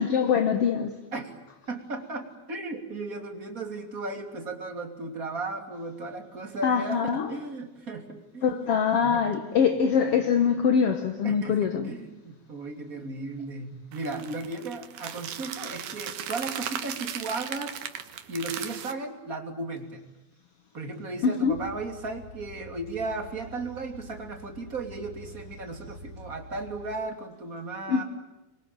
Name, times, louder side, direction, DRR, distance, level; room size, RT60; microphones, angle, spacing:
voice 1, 0.0-1.0 6.6-7.4 8.4-11.9 21.2-21.6 27.9-28.0, left 6 dB, 60° left, 1.5 m, -24 dB
voice 2, 1.7-9.6 10.0-10.4 11.2-17.8 18.3-20.1 20.7-28.0, right 3 dB, 25° right, 3.1 m, -36 dB
sound 1, 13.9-18.9, right 9 dB, 65° right, 2.8 m, -37 dB
sound 2, 21.5-27.0, equal, 80° left, 8.1 m, -46 dB
26.5 x 23.5 x 9.0 m
omnidirectional pair, 4.2 m